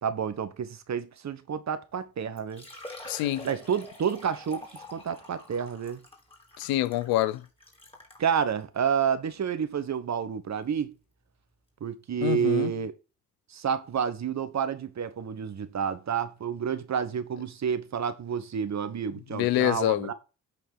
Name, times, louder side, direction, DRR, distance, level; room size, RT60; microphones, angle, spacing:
voice 1, 0.0-2.6 3.4-6.0 8.2-10.9 11.8-12.9 13.5-20.1, right 7 dB, 45° right, 1.2 m, -29 dB
Liquid, 1.9-2.0 2.4-8.2 8.9-9.0 9.5-9.6 11.2-11.3 11.5-11.6, left 1 dB, 15° left, 3.5 m, -46 dB
voice 2, 3.1-3.5 6.6-7.4 12.2-12.7 19.3-20.1, left 15 dB, 70° left, 0.6 m, -26 dB
8.4 x 4.4 x 4.8 m
hypercardioid pair, 45°, 37 cm